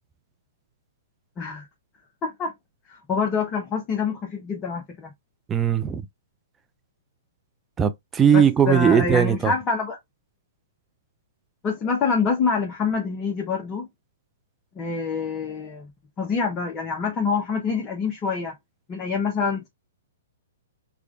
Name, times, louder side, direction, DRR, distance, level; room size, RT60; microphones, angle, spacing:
voice 1, 2.2-2.5 2.9-5.1 8.3-10.0 11.6-13.9 14.8-15.9 16.2-18.5 18.9-19.7, left 5 dB, 25° left, 0.8 m, -26 dB
voice 2, 5.5-6.0 7.8-9.5, right 8 dB, 15° right, 0.4 m, -19 dB
4.7 x 2.4 x 2.4 m
figure-of-eight pair, 115°, 0 cm